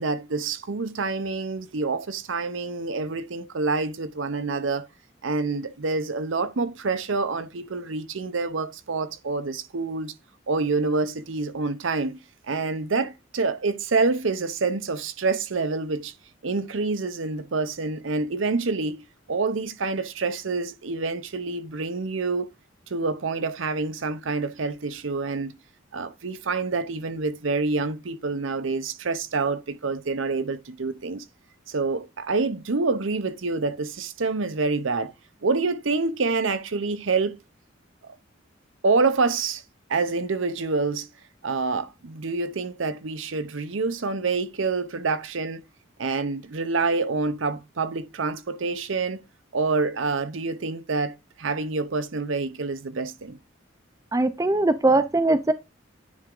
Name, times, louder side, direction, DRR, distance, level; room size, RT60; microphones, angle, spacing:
voice 1, 0.0-4.9 5.2-10.1 10.5-12.2 12.5-16.1 16.4-19.0 19.3-22.5 22.9-25.5 25.9-31.2 31.7-35.1 35.4-37.4 38.8-39.6 39.9-41.1 41.4-45.6 46.0-49.2 49.5-53.4, right 3 dB, 70° right, 0.7 m, -27 dB
voice 2, 54.1-55.5, right 2 dB, 15° right, 0.5 m, -21 dB
9.7 x 3.6 x 3.7 m
head